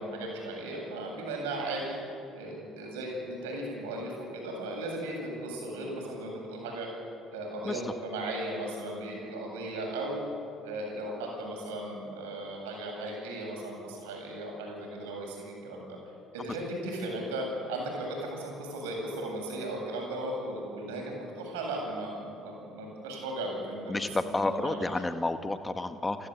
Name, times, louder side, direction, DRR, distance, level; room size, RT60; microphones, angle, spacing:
voice 1, 0.0-2.0 2.3-6.9 7.3-10.2 10.6-16.0 16.3-24.0 24.4-24.9, right 1 dB, 75° right, 0 dB, 7.8 m, -36 dB
voice 2, 23.9-26.3, left 2 dB, 20° left, 8 dB, 1.6 m, -30 dB
29.5 x 15.0 x 8.3 m, 2.6 s
hypercardioid pair, 55°, 0 cm